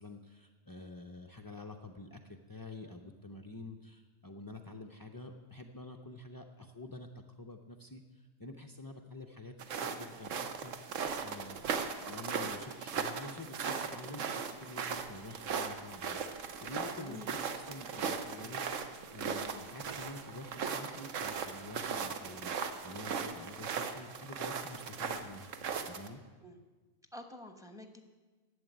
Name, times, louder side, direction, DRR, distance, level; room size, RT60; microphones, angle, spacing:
voice 1, 0.0-11.7 12.0-25.5 25.9-26.2, left 2 dB, 35° left, 2 dB, 0.3 m, -48 dB
sound 1, 9.6-26.1, right 6 dB, 75° right, 1.2 m, -38 dB
sound 2, 14.9-22.0, right 5 dB, 50° right, 0.3 m, -54 dB
voice 2, 17.0-17.3 26.4-26.6 27.1-28.0, left 1 dB, 5° right, 6 dB, 0.9 m, -48 dB
11.0 x 8.0 x 9.1 m, 1.3 s
omnidirectional pair, 1.3 m